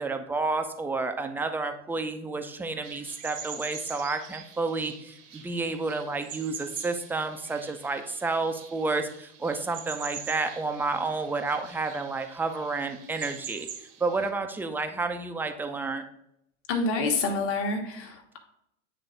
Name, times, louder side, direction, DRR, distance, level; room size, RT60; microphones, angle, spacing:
voice 1, 0.0-13.7 14.0-16.0, right 3 dB, 5° right, 6 dB, 0.5 m, -30 dB
sound 1, 2.8-14.3, right 7 dB, 85° right, 1.4 m, -44 dB
voice 2, 16.7-18.4, left 3 dB, 40° left, 2 dB, 1.4 m, -28 dB
9.0 x 3.3 x 3.9 m, 0.76 s
hypercardioid pair, 105°, 36 cm